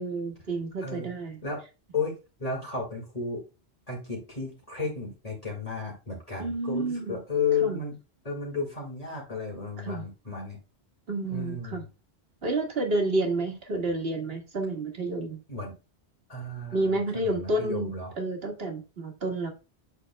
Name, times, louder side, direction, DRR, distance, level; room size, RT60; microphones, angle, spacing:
voice 1, 0.0-1.4 6.4-7.2 7.6-7.8 9.8-10.1 11.1-11.8 12.4-15.4 16.7-19.5, right 2 dB, 60° right, 2 dB, 1.9 m, -30 dB
voice 2, 1.9-3.4 3.9-8.0 8.2-10.6 11.3-11.8 15.5-15.7 16.3-18.1, left 5 dB, 35° left, -3 dB, 2.1 m, -33 dB
8.0 x 6.3 x 2.2 m, 0.30 s
omnidirectional pair, 1.2 m